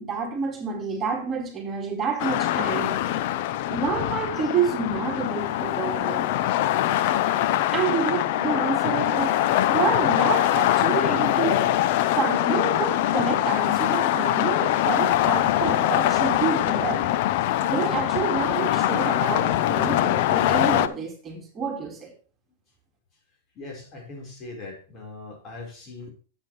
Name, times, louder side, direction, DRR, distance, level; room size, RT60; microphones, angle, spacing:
voice 1, 0.0-3.0 3.7-6.3 7.7-11.8 12.1-17.2 17.6-22.1, right 5 dB, 25° right, 2.1 m, -29 dB
sound 1, 2.2-20.9, left 13 dB, 60° left, 0.7 m, -23 dB
voice 2, 23.5-26.1, left 2 dB, 35° left, 4.6 m, -40 dB
12.0 x 7.5 x 3.3 m
hypercardioid pair, 110°, 0 cm